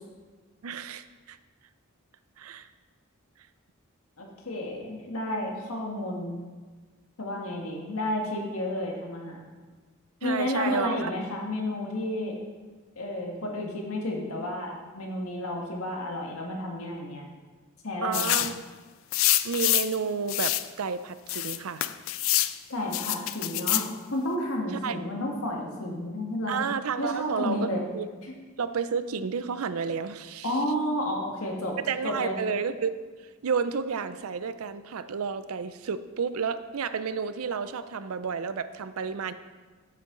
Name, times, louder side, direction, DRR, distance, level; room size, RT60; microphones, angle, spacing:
voice 1, 0.6-1.4 2.4-2.7 10.2-11.1 18.0-18.7 19.4-21.8 24.7-25.0 26.5-28.1 28.6-30.6 31.9-39.3, right 6 dB, 85° right, 12 dB, 0.5 m, -31 dB
voice 2, 4.2-6.4 7.2-9.4 10.2-12.4 13.0-17.3 17.8-18.4 22.7-23.8 24.1-26.6 27.0-27.8 30.4-31.8 32.0-32.4, left 1 dB, 90° left, 0 dB, 1.7 m, -31 dB
sound 1, 18.1-18.6 19.1-20.0 20.3-20.7 21.3-22.5 22.9-23.9, left 15 dB, 65° left, 0.4 m, -26 dB
8.5 x 8.3 x 3.9 m, 1.4 s
head